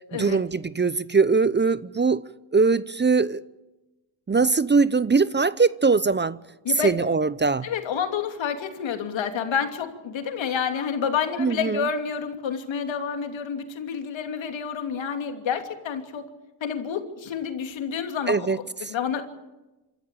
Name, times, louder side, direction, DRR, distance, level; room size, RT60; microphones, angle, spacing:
voice 1, 0.1-2.2 2.5-3.4 4.3-6.4 6.8-7.7 11.4-11.9 18.3-18.9, right 4 dB, 25° right, 0.7 m, -21 dB
voice 2, 7.6-16.3 16.6-19.2, left 7 dB, 75° left, 2.9 m, -29 dB
26.5 x 13.5 x 9.0 m
cardioid pair, 70°, 46 cm